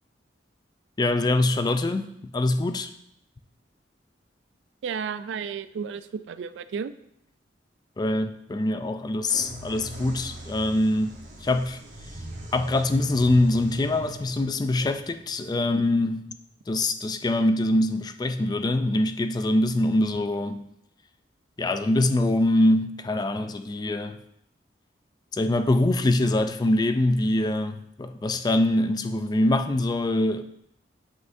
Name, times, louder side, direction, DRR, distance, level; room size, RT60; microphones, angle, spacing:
voice 1, 1.0-2.9 8.0-11.1 11.4-11.8 12.5-16.3 16.7-20.7 21.6-24.2 25.3-30.4, left 1 dB, 20° left, 0.3 m, -24 dB
voice 2, 4.8-6.9 12.6-12.7, right 6 dB, 80° right, 0.3 m, -33 dB
sound 1, 9.3-16.9, right 1 dB, 45° right, 1.1 m, -42 dB
8.1 x 5.6 x 2.6 m
head